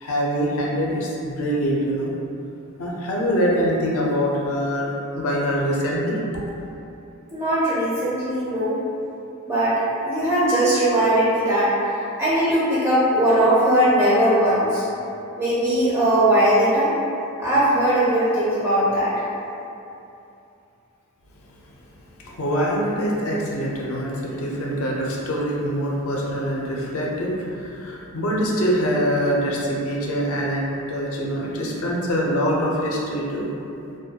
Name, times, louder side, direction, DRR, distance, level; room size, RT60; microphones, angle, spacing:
voice 1, 0.0-2.1 2.8-6.2 22.2-33.5, equal, 70° left, -3 dB, 0.5 m, -24 dB
voice 2, 7.3-8.8 9.5-11.7 12.2-14.8 15.4-16.9 17.4-19.1, right 1 dB, 15° right, -11 dB, 0.4 m, -19 dB
2.3 x 2.1 x 2.7 m, 2.7 s
head